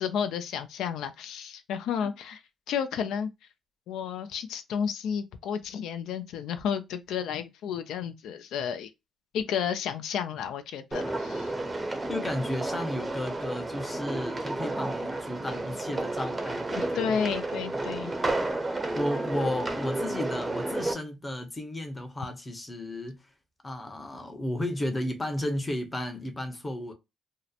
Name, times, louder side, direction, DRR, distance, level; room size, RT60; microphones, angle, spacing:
voice 1, 0.0-2.4 2.7-3.3 3.9-8.9 9.3-11.5 16.8-18.1, left 7 dB, 85° left, 0.3 m, -32 dB
sound 1, 10.9-20.9, right 2 dB, 20° right, 0.6 m, -31 dB
voice 2, 12.1-17.2 18.9-23.2 23.6-26.9, left 1 dB, 20° left, 0.7 m, -33 dB
2.7 x 2.0 x 2.3 m
cardioid pair, 90°, 0 cm